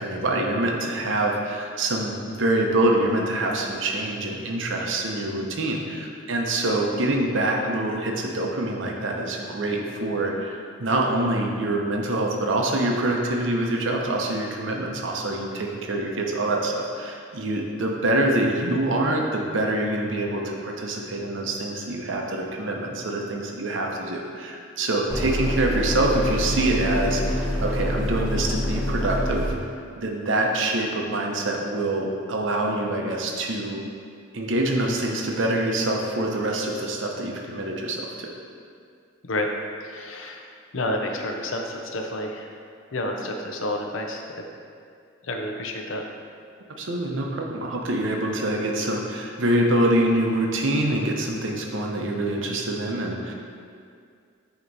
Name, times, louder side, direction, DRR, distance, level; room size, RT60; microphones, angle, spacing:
voice 1, 0.0-29.5 30.0-33.8 34.3-38.3 46.8-53.3, right 1 dB, 70° right, 0 dB, 0.7 m, -25 dB
sound 1, 25.1-29.5, left 1 dB, 5° right, 0.7 m, -26 dB
voice 2, 39.8-40.5 40.7-42.5 42.9-44.2 45.3-46.0, left 1 dB, 80° left, 2 dB, 0.6 m, -29 dB
8.0 x 2.9 x 4.0 m, 2.3 s
head